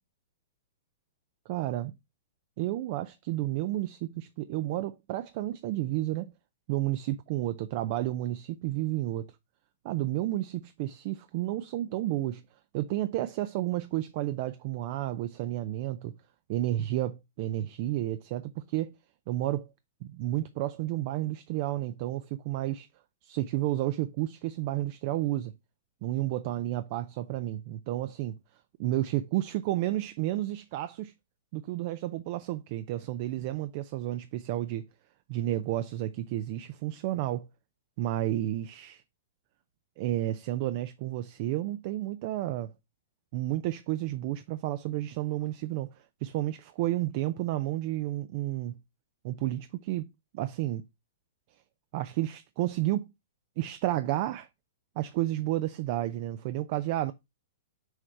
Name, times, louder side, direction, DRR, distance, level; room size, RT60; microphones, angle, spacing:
voice 1, 1.5-1.9 2.6-6.3 6.7-9.3 9.8-12.4 12.7-16.1 16.5-18.9 19.3-19.7 20.0-22.9 23.2-25.5 26.0-28.4 28.8-31.1 31.5-34.8 35.3-37.5 38.0-39.0 40.0-42.7 43.3-45.9 46.2-48.7 49.2-50.8 51.9-53.1 53.6-54.5 55.0-57.1, right 14 dB, 45° right, 0.4 m, -31 dB
6.3 x 3.2 x 4.7 m
hypercardioid pair, 130°, 0 cm